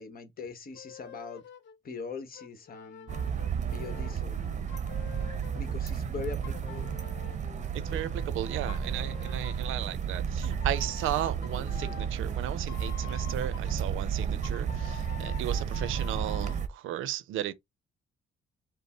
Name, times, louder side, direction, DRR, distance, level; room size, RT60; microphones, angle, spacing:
voice 1, 0.0-1.4 1.8-3.2 3.7-4.4 5.6-6.9, left 5 dB, 45° left, 1.1 m, -41 dB
sound 1, 0.8-1.8 2.3-5.8 6.4-8.3 8.7-9.8 10.4-13.7 14.4-16.6, left 10 dB, 70° left, 0.9 m, -48 dB
sound 2, 3.1-16.7, right 7 dB, 40° right, 0.7 m, -32 dB
voice 2, 7.7-17.5, right 12 dB, 85° right, 0.6 m, -35 dB
5.3 x 2.0 x 4.2 m
cardioid pair, 90°, 20 cm